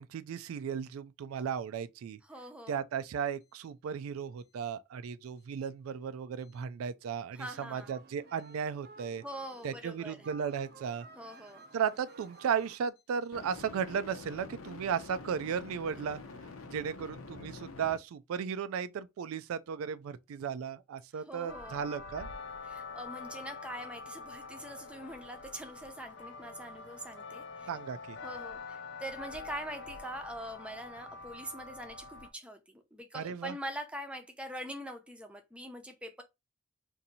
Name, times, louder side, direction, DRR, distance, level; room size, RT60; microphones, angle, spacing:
voice 1, 0.0-2.2 2.7-9.2 9.6-11.1 11.7-16.2 16.7-22.3 27.7-28.2 33.1-33.6, right 7 dB, 90° right, 0.3 m, -35 dB
voice 2, 2.2-2.8 7.3-7.9 9.2-10.3 11.2-11.7 21.1-21.9 22.7-27.7 28.2-36.2, right 1 dB, 5° right, 0.5 m, -43 dB
sound 1, 7.5-12.8, right 3 dB, 50° right, 0.6 m, -54 dB
sound 2, 8.4-8.6 13.3-18.0, left 3 dB, 85° left, 0.7 m, -47 dB
sound 3, 21.5-32.3, left 4 dB, 55° left, 0.5 m, -45 dB
2.7 x 2.6 x 4.0 m
head